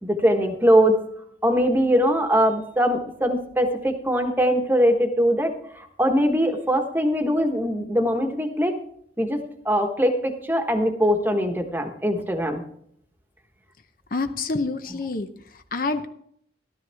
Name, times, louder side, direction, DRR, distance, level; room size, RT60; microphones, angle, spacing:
voice 1, 0.0-1.0 1.4-8.8 9.2-9.4 9.6-12.6, equal, 10° right, 5 dB, 1.2 m, -21 dB
voice 2, 14.1-15.3 15.7-16.1, left 3 dB, 50° left, 8 dB, 0.7 m, -27 dB
13.0 x 12.5 x 3.5 m, 0.68 s
head